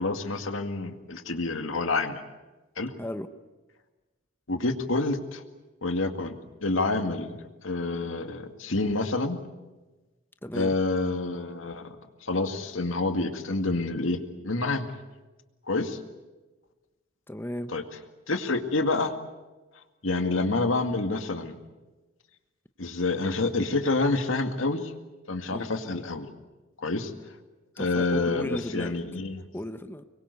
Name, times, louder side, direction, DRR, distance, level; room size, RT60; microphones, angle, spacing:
voice 1, 0.0-2.2 2.8-2.9 4.5-5.4 5.8-6.4 6.6-9.4 10.5-12.0 12.2-14.2 14.4-14.9 15.7-16.0 17.7-17.8 18.3-19.1 20.0-21.6 22.8-24.9 25.3-26.3 26.8-27.1 27.8-29.4, left 2 dB, 85° left, 7 dB, 2.2 m, -28 dB
voice 2, 10.4-10.8 17.3-17.7 25.5-25.7 27.8-29.0 29.5-30.0, left 1 dB, 10° left, 9 dB, 0.9 m, -35 dB
25.0 x 22.5 x 8.2 m, 1.2 s
head